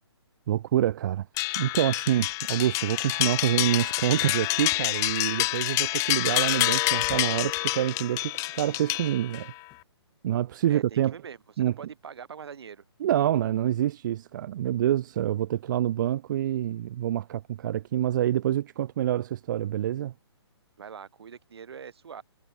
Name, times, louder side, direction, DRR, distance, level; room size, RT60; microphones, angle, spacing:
voice 1, 0.5-1.3 1.5-9.5 10.2-11.1 11.6-11.7 13.0-20.1, right 12 dB, 45° right, 1.4 m, -27 dB
sound 1, 1.4-9.5, left 22 dB, 20° left, 1.0 m, -27 dB
voice 2, 10.7-11.4 11.8-12.8 20.8-22.2, right 7 dB, 65° right, 4.7 m, -43 dB
hypercardioid pair, 145°, 14 cm